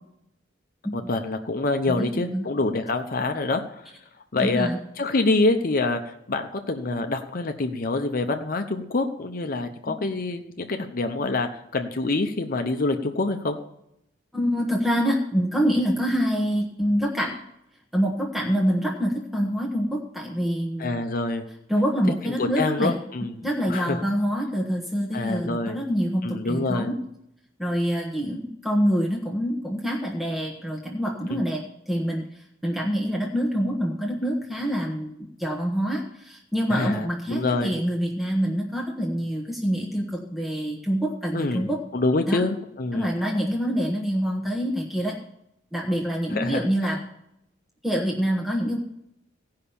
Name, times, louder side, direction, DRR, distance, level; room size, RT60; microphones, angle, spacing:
voice 1, 0.9-3.9 4.3-4.7 5.0-13.6 20.8-21.4 22.2-23.4 23.7-24.0 25.1-25.8 26.2-26.9 31.3-31.4 36.7-37.7 41.3-43.1 46.3-47.0, left 2 dB, 50° left, 6 dB, 0.8 m, -26 dB
voice 2, 1.9-2.5 4.4-4.8 9.9-10.0 14.3-17.4 17.9-21.0 21.7-23.0 23.4-27.0 27.6-35.1 35.4-41.8 42.3-42.4 42.9-45.2 45.7-47.0 47.8-48.8, equal, ahead, -1 dB, 1.2 m, -26 dB
16.0 x 5.7 x 7.0 m, 0.79 s
head